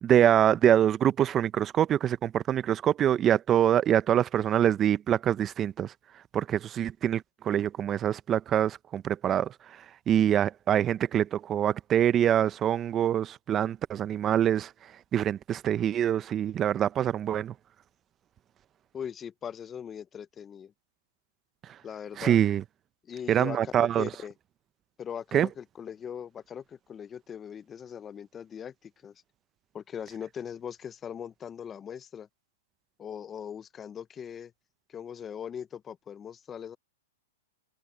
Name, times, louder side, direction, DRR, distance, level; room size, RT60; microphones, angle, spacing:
voice 1, 0.0-17.6 21.6-21.8 22.2-22.6 23.3-24.1 25.3-25.5, right 10 dB, 25° right, 0.8 m, -25 dB
voice 2, 18.9-20.7 21.8-22.4 23.1-24.3 25.0-29.1 29.7-32.3 33.0-34.5 34.9-36.8, left 8 dB, 20° left, 0.7 m, -40 dB
hypercardioid pair, 130°, 0 cm